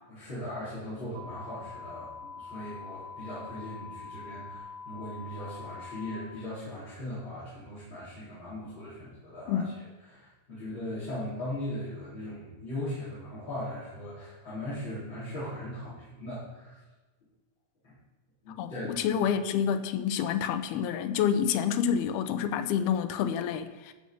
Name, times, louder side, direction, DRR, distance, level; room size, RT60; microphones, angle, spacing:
voice 1, 0.1-9.7 10.1-16.8 17.8-17.9 18.4-19.0, left 1 dB, 30° left, -13 dB, 4.3 m, -39 dB
sound 1, 1.1-6.1, left 5 dB, 75° right, 3.7 m, -44 dB
voice 2, 18.6-23.9, left 8 dB, 80° left, 9 dB, 2.5 m, -28 dB
15.0 x 6.8 x 5.2 m, 1.2 s
omnidirectional pair, 4.7 m